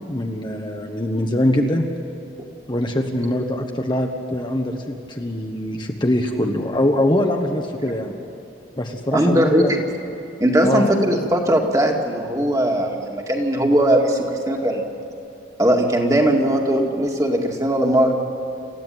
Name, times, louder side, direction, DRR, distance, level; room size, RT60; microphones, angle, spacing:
voice 1, 0.1-1.9 2.7-8.1 8.8-9.8 10.6-10.9, left 1 dB, 25° left, 2 dB, 1.3 m, -22 dB
voice 2, 9.1-9.8 10.4-14.8 15.6-18.1, right 1 dB, 20° right, 1 dB, 2.2 m, -19 dB
28.0 x 14.5 x 9.3 m, 2.9 s
head